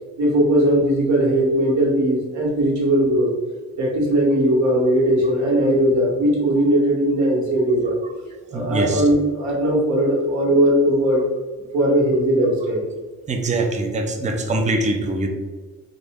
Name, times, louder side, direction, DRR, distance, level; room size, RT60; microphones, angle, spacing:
voice 1, 0.2-3.3 3.8-8.0 8.5-11.2 11.7-12.8, right 1 dB, 65° right, -2 dB, 1.3 m, -19 dB
voice 2, 8.5-9.0 13.3-15.3, right 2 dB, 25° right, 3 dB, 0.6 m, -23 dB
3.0 x 2.5 x 3.5 m, 1.3 s
cardioid pair, 90°, 30 cm